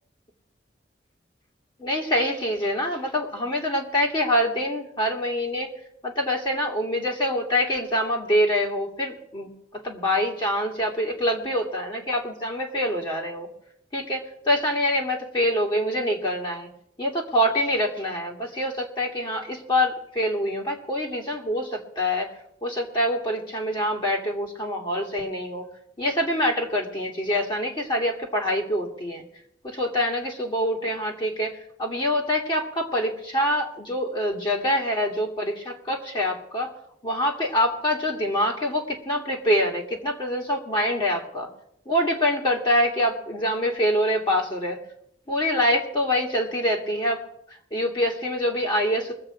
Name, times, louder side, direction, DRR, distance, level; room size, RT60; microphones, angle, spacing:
voice 1, 1.8-5.7 6.0-13.5 13.9-16.7 17.0-22.3 22.6-25.7 26.0-29.2 29.6-36.7 37.0-41.5 41.9-44.8 45.3-47.2 47.7-49.1, equal, 25° left, -1 dB, 2.0 m, -25 dB
22.5 x 7.5 x 4.8 m, 0.71 s
head